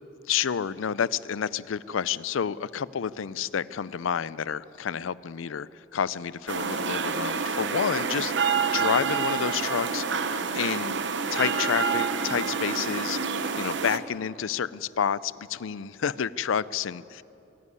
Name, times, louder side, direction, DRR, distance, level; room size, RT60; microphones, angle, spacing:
voice 1, 0.3-10.0 10.5-11.0 11.3-13.2 13.6-17.2, left 7 dB, 85° left, 19 dB, 0.5 m, -29 dB
sound 1, 6.5-14.0, right 5 dB, 65° right, 0.9 m, -28 dB
25.0 x 11.0 x 9.8 m, 2.9 s
head